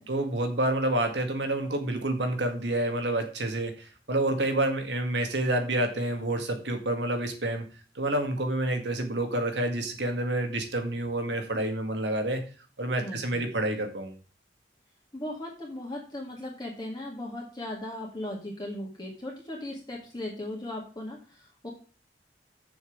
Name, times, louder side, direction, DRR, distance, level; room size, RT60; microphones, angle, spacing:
voice 1, 0.1-7.6 8.0-12.4 12.8-14.1, right 1 dB, 80° right, 5 dB, 2.0 m, -28 dB
voice 2, 13.0-13.5 15.1-21.7, left 1 dB, 25° left, -2 dB, 2.1 m, -37 dB
7.1 x 6.0 x 7.1 m, 0.38 s
head